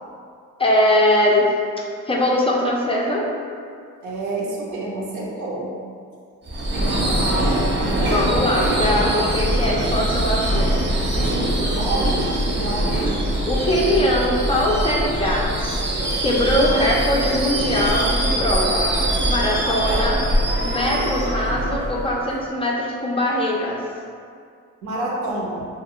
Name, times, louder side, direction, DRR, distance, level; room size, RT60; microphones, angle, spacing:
voice 1, 0.6-1.5 1.8-3.2 8.1-10.8 13.5-15.9 16.2-18.9 19.3-20.2 20.6-23.8, left 1 dB, 20° left, -3 dB, 0.4 m, -21 dB
voice 2, 4.0-5.7 6.7-7.9 11.3-13.1 16.6-16.7 19.7-20.0 24.8-25.7, right 2 dB, 75° right, -3 dB, 0.7 m, -29 dB
Subway metro underground / Screech, 6.5-22.4, right 1 dB, 35° right, 0.6 m, -22 dB
2.2 x 2.2 x 3.6 m, 2.2 s
cardioid pair, 90°, 30 cm